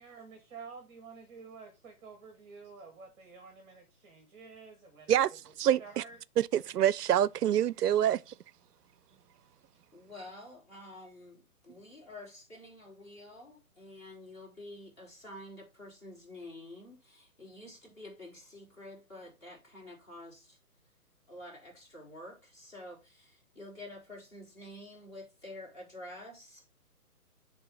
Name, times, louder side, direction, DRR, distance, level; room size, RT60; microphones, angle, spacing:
voice 1, 0.0-5.4 5.8-6.2, right 5 dB, 20° right, 1.3 m, -50 dB
voice 2, 5.6-6.0 6.4-8.3, right 11 dB, 85° right, 0.5 m, -26 dB
voice 3, 9.9-20.6 21.3-26.7, left 1 dB, 20° left, 4.1 m, -49 dB
10.0 x 3.8 x 3.8 m
hypercardioid pair, 160°, 46 cm